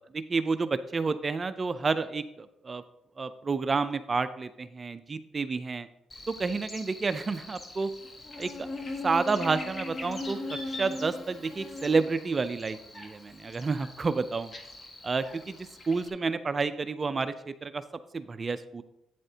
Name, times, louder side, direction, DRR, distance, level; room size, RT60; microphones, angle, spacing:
voice 1, 0.1-2.8 3.2-5.9 6.3-7.9 8.4-8.7 9.0-10.4 10.7-14.5 15.0-17.8 18.1-18.8, right 4 dB, 35° right, 12 dB, 0.4 m, -30 dB
Buzz, 6.1-16.1, left 2 dB, 40° left, 1.2 m, -40 dB
8.9 x 7.4 x 2.8 m, 0.82 s
cardioid pair, 90°, 0 cm